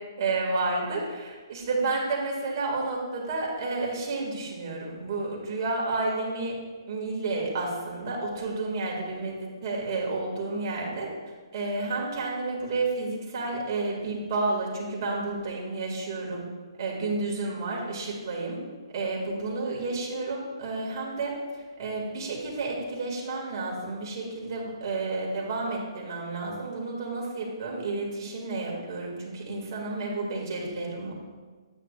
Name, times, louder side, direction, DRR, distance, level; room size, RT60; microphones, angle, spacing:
voice 1, 0.2-6.5 6.9-11.1 11.5-16.5 16.8-18.6 18.9-31.1, right 3 dB, 40° right, -2 dB, 2.1 m, -31 dB
9.5 x 8.0 x 2.5 m, 1.4 s
hypercardioid pair, 155°, 3 cm